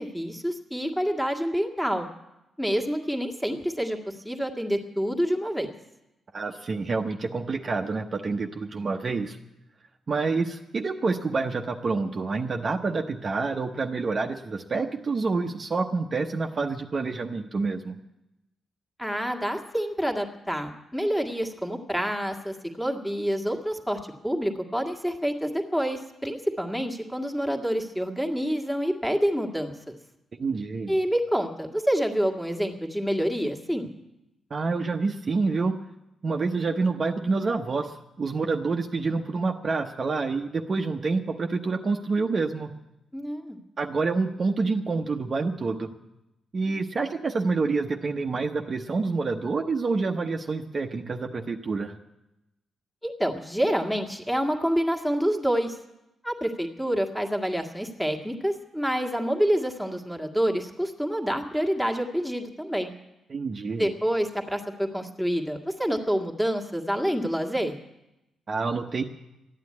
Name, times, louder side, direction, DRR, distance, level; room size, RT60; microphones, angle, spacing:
voice 1, 0.0-2.1 2.6-5.7 19.0-30.0 30.9-33.9 43.1-43.6 53.0-55.8 56.2-62.9 63.8-67.8, equal, 5° left, 2 dB, 1.8 m, -27 dB
voice 2, 6.3-9.4 10.1-18.0 30.4-30.9 34.5-35.8 36.2-42.7 43.8-45.9 46.5-52.0 63.3-63.9 68.5-69.0, right 4 dB, 40° right, 3 dB, 0.9 m, -27 dB
13.0 x 9.8 x 9.5 m, 0.92 s
cardioid pair, 115°, 0 cm